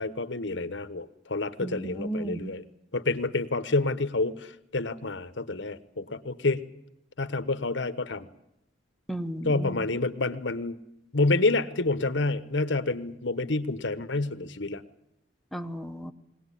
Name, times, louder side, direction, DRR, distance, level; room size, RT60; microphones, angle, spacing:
voice 1, 0.0-2.6 2.9-6.6 7.2-8.3 9.4-10.8 11.1-14.8, left 3 dB, 85° left, 13 dB, 1.2 m, -28 dB
voice 2, 1.6-2.5 9.1-9.9 15.5-16.1, right 1 dB, ahead, 6 dB, 1.0 m, -34 dB
21.5 x 18.0 x 10.0 m, 0.84 s
head